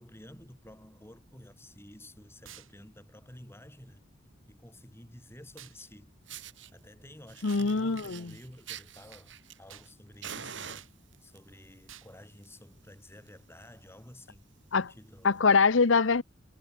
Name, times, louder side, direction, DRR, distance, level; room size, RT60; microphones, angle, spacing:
voice 1, 0.0-4.0 4.5-6.1 6.7-9.3 9.6-10.9 11.2-14.5 14.7-15.4, left 1 dB, 10° left, 3.5 m, -52 dB
sound 1, 2.4-2.7 5.6-5.8 7.5-7.7 9.7-9.9 10.8-10.9 11.9-12.1, right 11 dB, 85° right, 7.3 m, -51 dB
Fire, 5.8-5.9 6.3-6.7 7.3-9.9 10.2-11.4 12.2-12.5 12.8-12.9 13.3-13.4 13.6-13.9 14.4-14.5 15.4-15.5, right 8 dB, 60° right, 3.0 m, -45 dB
voice 2, 7.4-8.3 14.7-14.9 15.2-16.2, left 4 dB, 70° left, 0.8 m, -23 dB
head